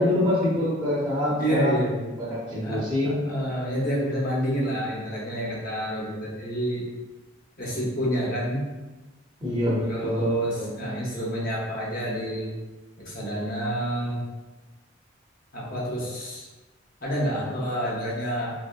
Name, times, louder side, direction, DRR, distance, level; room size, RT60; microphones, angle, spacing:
voice 1, 0.0-1.8 2.2-3.2 9.4-10.3 10.6-11.0, left 1 dB, 15° right, -8 dB, 0.6 m, -25 dB
voice 2, 1.4-2.0 2.6-6.8 7.6-8.6 9.8-12.5 13.0-14.2 15.5-16.5 17.0-18.5, equal, 45° left, -5 dB, 0.9 m, -28 dB
3.0 x 2.7 x 2.4 m, 1.1 s
head